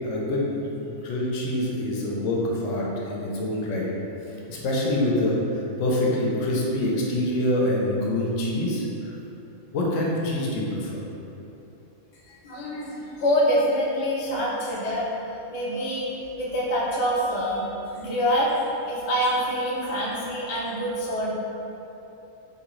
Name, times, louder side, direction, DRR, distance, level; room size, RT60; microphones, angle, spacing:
voice 1, 0.0-3.9 4.5-9.1 9.7-11.0, left 1 dB, 85° left, -3 dB, 1.0 m, -26 dB
voice 2, 12.3-15.1 15.5-16.1 16.4-18.5 18.9-21.3, equal, 40° left, -6 dB, 0.6 m, -26 dB
3.6 x 2.8 x 3.0 m, 3.0 s
omnidirectional pair, 1.3 m